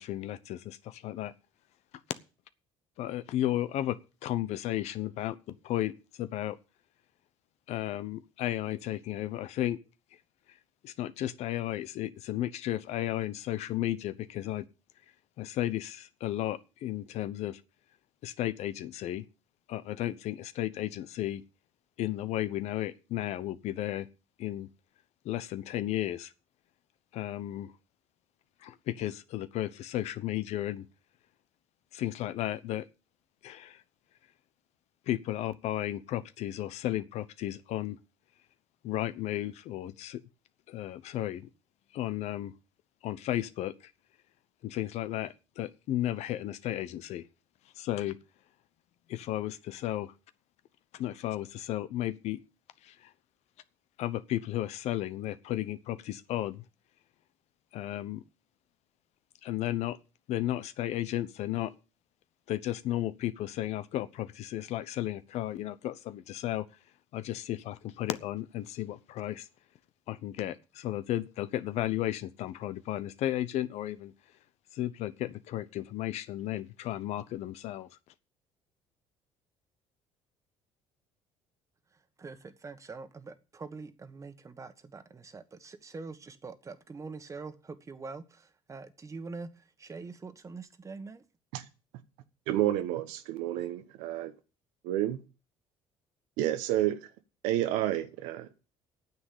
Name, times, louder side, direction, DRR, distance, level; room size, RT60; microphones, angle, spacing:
voice 1, 0.0-1.3 3.0-5.9 6.2-6.6 7.7-9.8 10.8-14.6 15.4-17.6 18.2-19.2 19.7-21.4 22.0-24.1 24.4-24.7 25.2-26.3 27.1-27.7 28.6-30.8 31.9-32.8 33.4-33.8 35.1-38.0 38.8-40.2 40.7-41.5 41.9-42.5 43.0-43.7 44.6-47.2 47.8-48.2 49.1-50.1 50.9-52.4 52.8-53.1 54.0-56.6 57.7-58.2 59.4-60.0 60.3-61.7 62.5-66.6 67.1-69.5 70.1-74.1 74.7-77.9, left 13 dB, 70° left, 0.9 m, -34 dB
voice 2, 82.2-91.2, right 4 dB, 25° right, 1.4 m, -44 dB
voice 3, 92.5-94.3 94.8-95.2 96.4-97.1 97.4-98.5, right 13 dB, 90° right, 1.1 m, -30 dB
9.5 x 7.5 x 8.5 m
cardioid pair, 100°, 12 cm